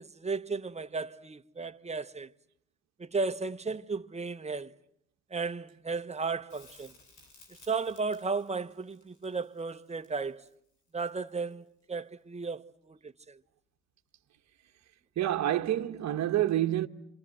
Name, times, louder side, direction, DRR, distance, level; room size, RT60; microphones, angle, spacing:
voice 1, 0.0-2.3 3.0-4.7 5.3-6.9 7.7-10.5 10.9-13.4, right 4 dB, 20° right, 1.1 m, -35 dB
Crackle, 6.5-11.6 14.4-14.5, left 3 dB, 75° left, 7.3 m, -59 dB
voice 2, 15.2-16.9, right 12 dB, 65° right, 1.2 m, -28 dB
27.5 x 27.0 x 7.8 m
cardioid pair, 90°, 30 cm